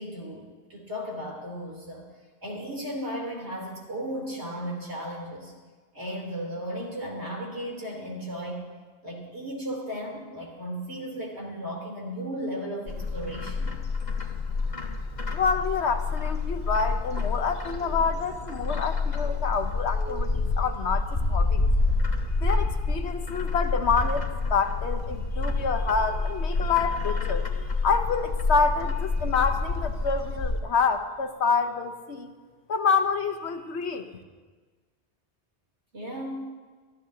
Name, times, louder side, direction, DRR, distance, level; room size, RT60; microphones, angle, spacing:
voice 1, 0.0-2.1 2.4-5.5 5.9-8.7 9.0-13.7 35.9-36.4, equal, 85° right, -2 dB, 3.7 m, -35 dB
Bird, 12.9-30.6, left 3 dB, 40° left, 1.3 m, -28 dB
voice 2, 15.3-21.7 22.4-32.3 32.7-34.1, left 5 dB, 85° left, 7 dB, 1.3 m, -27 dB
25.0 x 14.0 x 2.8 m, 1.4 s
omnidirectional pair, 1.1 m